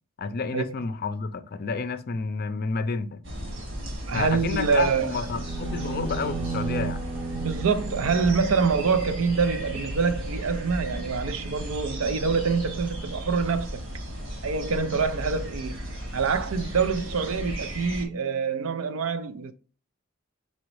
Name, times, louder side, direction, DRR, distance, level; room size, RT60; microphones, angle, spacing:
voice 1, 0.2-3.2 4.1-7.0, left 4 dB, 45° left, 0.5 m, -30 dB
sound 1, 3.2-18.1, equal, 65° right, 1.6 m, -35 dB
voice 2, 4.1-5.3 7.4-13.8 14.4-15.8 16.1-19.5, right 5 dB, 80° right, 0.5 m, -25 dB
sound 2, 5.2-9.5, right 5 dB, 25° right, 0.7 m, -35 dB
4.1 x 3.9 x 3.1 m
head